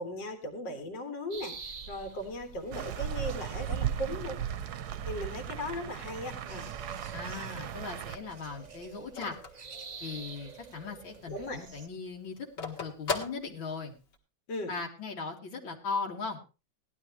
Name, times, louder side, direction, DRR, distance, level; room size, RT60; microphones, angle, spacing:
voice 1, 0.0-4.4 5.1-6.7 11.3-11.6 14.5-14.7, left 1 dB, 65° left, 6 dB, 2.4 m, -37 dB
sound 1, 1.3-11.9, right 5 dB, 85° right, 0.3 m, -48 dB
sound 2, 2.7-8.2, right 9 dB, 65° right, 1.2 m, -36 dB
voice 2, 7.1-9.4 10.0-13.9 14.7-16.4, left 4 dB, 85° left, 0 dB, 2.6 m, -38 dB
Telephone, 7.1-10.5 10.9-11.0 11.3-14.2, left 4 dB, 45° left, 2.2 m, -39 dB
17.5 x 11.5 x 3.0 m, 0.31 s
omnidirectional pair, 2.1 m